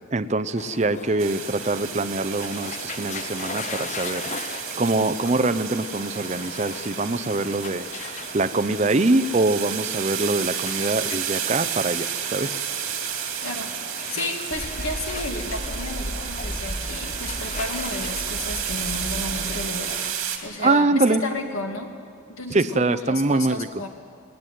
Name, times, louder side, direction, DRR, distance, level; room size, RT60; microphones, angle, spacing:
voice 1, 0.0-12.6 20.6-21.2 22.5-23.7, right 2 dB, 35° right, 10 dB, 0.5 m, -24 dB
sound 1, 0.6-20.1, left 5 dB, 35° left, 0.6 m, -39 dB
sound 2, 1.2-20.4, right 9 dB, 75° right, 2.6 m, -32 dB
voice 2, 13.4-13.7 14.1-19.9 20.4-21.9 22.3-23.9, left 2 dB, 85° left, 3 dB, 2.5 m, -32 dB
sound 3, 14.5-19.9, equal, 10° left, 1.1 m, -35 dB
20.0 x 18.5 x 9.3 m, 2.2 s
head